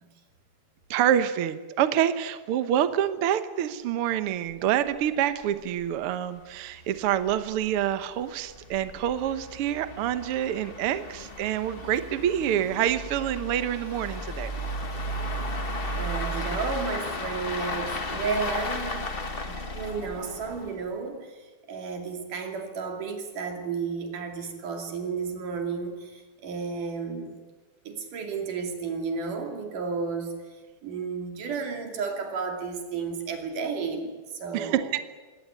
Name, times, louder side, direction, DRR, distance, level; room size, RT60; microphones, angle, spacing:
voice 1, 0.9-14.5 34.5-35.0, right 10 dB, 65° right, 11 dB, 1.5 m, -27 dB
sound 1, 4.5-4.6 4.9-5.0 5.4-5.5 5.8-5.9 6.6-20.9, left 1 dB, 50° left, 0.6 m, -34 dB
voice 2, 15.9-19.1 19.5-21.3 21.7-27.4 27.9-30.4 30.8-34.8, right 5 dB, 85° right, 4 dB, 4.2 m, -32 dB
22.0 x 17.5 x 9.4 m, 1.3 s
omnidirectional pair, 3.6 m